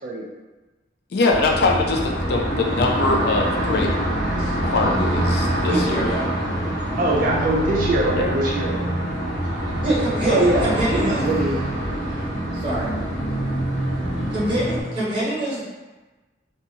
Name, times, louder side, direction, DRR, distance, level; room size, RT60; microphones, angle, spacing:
voice 1, 1.1-3.9 4.6-6.1 8.1-8.3, left 3 dB, 60° left, 0 dB, 0.4 m, -22 dB
sound 1, 1.3-14.8, right 1 dB, 80° left, 0.8 m, -25 dB
voice 2, 5.6-6.3 9.8-11.3 12.5-12.9 14.3-15.6, right 1 dB, 30° right, -8 dB, 1.0 m, -25 dB
voice 3, 7.0-8.8 9.3-9.4 10.3-10.7 11.0-11.6, right 2 dB, 50° right, -3 dB, 0.3 m, -22 dB
2.6 x 2.3 x 2.7 m, 1.2 s
head